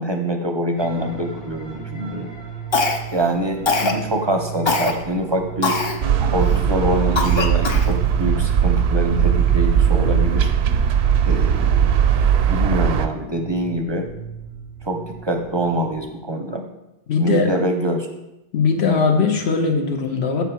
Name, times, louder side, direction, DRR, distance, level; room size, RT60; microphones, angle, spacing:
voice 1, 0.0-2.3 3.1-5.8 6.2-10.5 11.2-11.9 12.5-14.1 14.8-16.6 17.2-18.1, right 1 dB, 35° right, 4 dB, 0.5 m, -24 dB
sound 1, 0.8-16.0, right 8 dB, 50° left, 1.7 m, -35 dB
Cough, 2.7-3.2 3.7-4.0 4.7-4.9 5.6-6.0 6.5-6.6 7.2-7.9, left 3 dB, 35° left, 0.5 m, -21 dB
sound 2, 6.0-13.1, right 8 dB, 90° right, 0.8 m, -18 dB
voice 2, 17.1-17.6 18.5-20.4, left 5 dB, 85° left, 3 dB, 1.2 m, -19 dB
7.2 x 4.0 x 5.7 m, 0.94 s
omnidirectional pair, 1.0 m